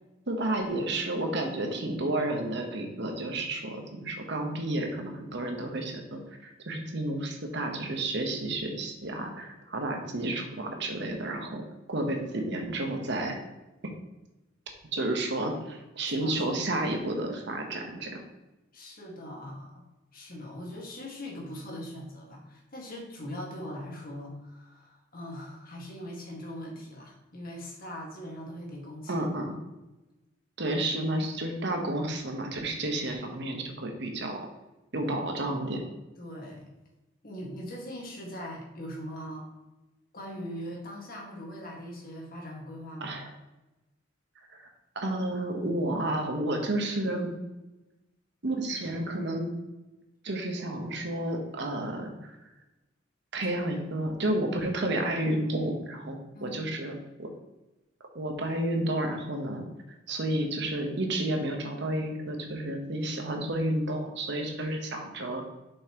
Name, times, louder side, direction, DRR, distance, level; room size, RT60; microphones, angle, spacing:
voice 1, 0.3-11.6 11.9-13.4 13.8-13.9 14.9-18.2 29.1-29.6 30.6-34.5 34.9-35.8 43.0-43.3 44.6-47.4 48.4-49.5 50.2-52.4 53.3-57.3 58.1-59.6 60.1-65.4, right 1 dB, 60° right, 3 dB, 1.1 m, -31 dB
voice 2, 18.7-19.8 20.1-29.3 35.0-35.5 36.2-36.7 37.2-39.5 40.1-43.2 56.3-56.6, equal, 45° left, -1 dB, 1.8 m, -41 dB
7.0 x 5.4 x 3.0 m, 1.0 s
head